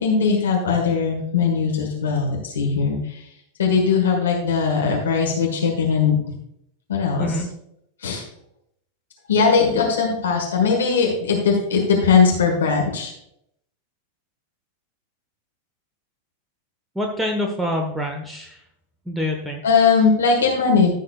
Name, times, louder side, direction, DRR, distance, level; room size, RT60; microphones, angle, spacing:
voice 1, 0.0-3.2 3.6-6.2 6.9-7.4 8.0-8.2 9.3-13.1 19.6-20.9, left 5 dB, 65° left, 1 dB, 1.6 m, -19 dB
voice 2, 17.0-18.6 19.1-19.6, equal, 5° right, 1 dB, 1.0 m, -26 dB
14.5 x 6.5 x 2.4 m, 0.75 s
figure-of-eight pair, 90°, 0 cm